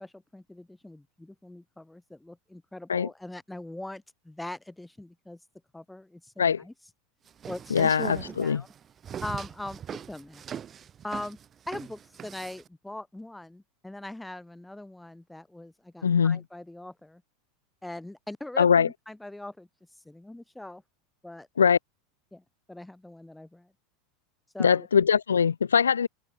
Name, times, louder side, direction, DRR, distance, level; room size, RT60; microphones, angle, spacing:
voice 1, 0.0-5.4 5.7-6.7 7.5-7.9 8.3-8.7 9.2-10.4 11.0-11.4 11.7-17.2 17.8-19.7 20.0-20.8 21.2-21.5 22.3-23.7 24.5-24.9, left 1 dB, 5° left, 4.2 m, -41 dB
sound 1, 7.3-12.7, right 8 dB, 30° right, 3.9 m, -40 dB
voice 2, 7.7-8.6 16.0-16.4 18.6-18.9 21.6-21.8 24.6-26.1, left 7 dB, 75° left, 0.4 m, -22 dB
figure-of-eight pair, 80°, 0 cm